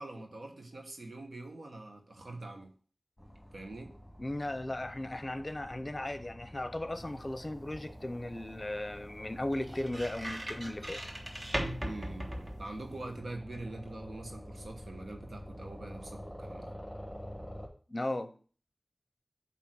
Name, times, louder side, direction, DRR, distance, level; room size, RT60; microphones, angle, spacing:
voice 1, 0.0-2.7 3.5-3.9 11.8-12.3 12.6-16.7, right 2 dB, 85° right, 1.3 m, -44 dB
sound 1, 3.2-17.7, equal, ahead, 2.5 m, -48 dB
voice 2, 4.2-11.0 17.9-18.3, left 1 dB, 35° left, 0.7 m, -36 dB
sound 2, 6.9-13.2, right 1 dB, 40° right, 1.5 m, -41 dB
8.4 x 3.0 x 6.3 m
wide cardioid pair, 70°, 0 cm